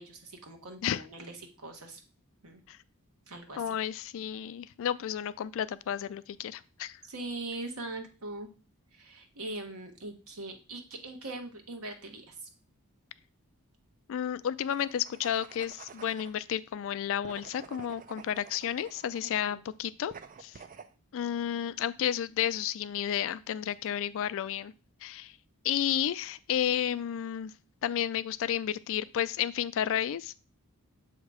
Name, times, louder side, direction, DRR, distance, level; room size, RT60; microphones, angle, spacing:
voice 1, 0.0-2.0 2.4-2.6 3.3-3.8 7.0-8.5 8.9-12.4 19.2-19.6, right 2 dB, 70° right, 4 dB, 1.1 m, -41 dB
voice 2, 3.6-7.0 14.1-20.1 20.4-20.5 21.1-24.7 25.0-25.3 25.6-27.5 27.8-30.3, left 10 dB, 60° left, 16 dB, 0.3 m, -32 dB
sound 1, 14.6-16.4 17.2-19.4 20.1-20.9, right 6 dB, 35° right, 0.4 m, -50 dB
7.2 x 2.9 x 4.8 m, 0.34 s
head